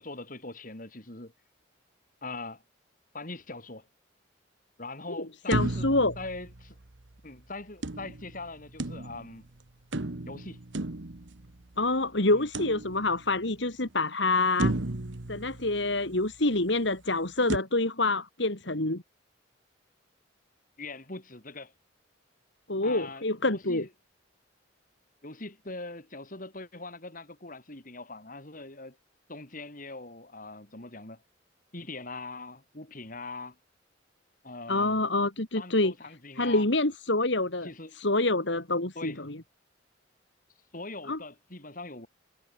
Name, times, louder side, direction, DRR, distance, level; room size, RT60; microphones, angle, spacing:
voice 1, 0.0-1.3 2.2-2.6 3.1-3.9 4.8-5.9 6.2-6.8 7.2-9.4 10.3-10.6 12.3-12.5 20.8-21.7 22.8-23.9 25.2-29.0 29.3-31.2 31.7-33.6 34.4-35.1 35.6-36.7 37.6-38.0 39.0-39.2 40.7-42.1, left 2 dB, 45° left, 3.7 m, -42 dB
voice 2, 5.2-6.1 11.8-14.7 15.3-19.0 22.7-23.8 34.7-35.9 36.4-37.7 38.0-39.4 41.1-41.2, left 2 dB, 65° left, 3.0 m, -27 dB
sound 1, 5.5-7.1 7.8-9.4 9.9-11.8 12.5-13.4 13.9-14.0 14.6-16.3 17.5-17.6, right 2 dB, 70° right, 1.4 m, -34 dB
head